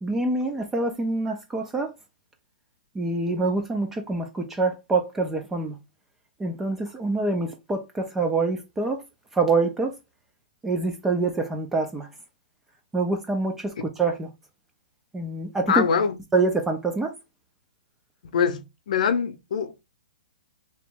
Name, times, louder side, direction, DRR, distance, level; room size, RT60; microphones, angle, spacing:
voice 1, 0.0-1.9 3.0-5.8 6.4-9.0 9.3-9.9 10.6-12.1 12.9-14.3 15.1-15.8 16.3-17.1, right 3 dB, 5° right, 0.4 m, -25 dB
voice 2, 15.7-16.1 18.3-19.8, left 6 dB, 55° left, 0.7 m, -24 dB
3.0 x 2.9 x 3.4 m
hypercardioid pair, 165°, 5 cm